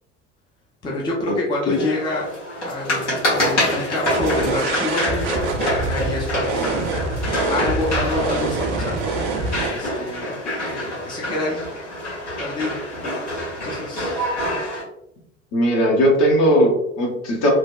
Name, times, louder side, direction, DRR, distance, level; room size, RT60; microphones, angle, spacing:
voice 1, 0.8-2.3 2.6-6.9 7.5-9.1 9.6-11.7 12.4-12.8 13.6-14.3, left 2 dB, 15° left, -3 dB, 0.4 m, -27 dB
sound 1, 1.7-14.8, left 1 dB, 70° left, 1.2 m, -26 dB
sound 2, 4.1-9.7, right 3 dB, 50° right, 0.5 m, -26 dB
voice 2, 15.5-17.5, equal, 45° left, -1 dB, 0.9 m, -18 dB
2.7 x 2.1 x 2.2 m, 0.78 s
figure-of-eight pair, 60°, 36 cm